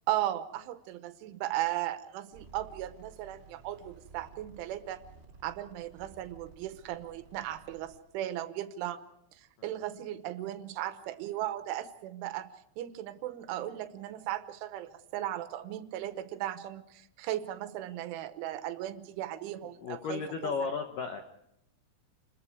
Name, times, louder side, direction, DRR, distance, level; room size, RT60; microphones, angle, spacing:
voice 1, 0.1-5.0 5.4-9.0 9.3-12.5 12.8-20.5, right 13 dB, 80° right, 11 dB, 3.4 m, -36 dB
sound 1, 2.3-8.0, right 5 dB, 30° right, 2.8 m, -55 dB
voice 2, 19.8-21.2, left 5 dB, 75° left, 5 dB, 1.9 m, -34 dB
29.0 x 21.0 x 4.8 m, 0.78 s
omnidirectional pair, 5.6 m